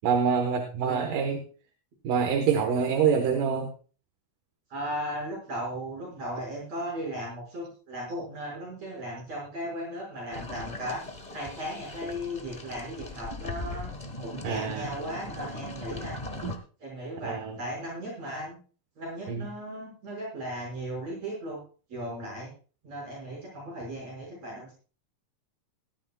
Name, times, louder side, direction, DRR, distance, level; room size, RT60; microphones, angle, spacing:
voice 1, 0.0-1.4 2.0-3.7 14.4-14.9 16.4-16.5 17.2-17.6 19.3-19.5, right 6 dB, 90° right, 4 dB, 3.0 m, -26 dB
voice 2, 4.7-11.0 11.3-13.9 14.2-16.2 16.8-18.6 19.0-21.6 21.9-22.5 22.8-24.7, equal, 55° right, -3 dB, 6.9 m, -36 dB
sound 1, 10.3-16.6, left 2 dB, 40° left, 0.5 m, -39 dB
18.5 x 13.0 x 2.3 m, 0.37 s
omnidirectional pair, 3.7 m